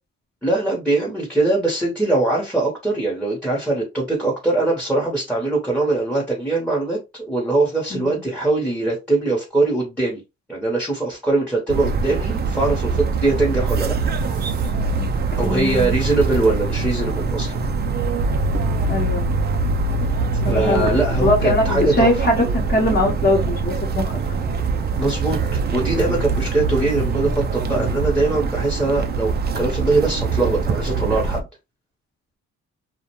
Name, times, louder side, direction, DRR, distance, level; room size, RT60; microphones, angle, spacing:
voice 1, 0.4-10.2 10.5-14.0 15.4-17.6 20.5-22.1 25.0-31.5, right 2 dB, 5° left, 0.8 m, -22 dB
voice 2, 7.9-8.2 15.0-15.1 15.4-15.9 18.9-19.3 20.4-20.9 21.2-24.1, left 1 dB, 30° left, 0.8 m, -21 dB
sound 1, 11.7-31.4, right 5 dB, 35° right, 0.4 m, -24 dB
sound 2, 13.4-28.0, right 2 dB, 65° right, 0.7 m, -27 dB
2.4 x 2.1 x 2.9 m
cardioid pair, 90°, 30 cm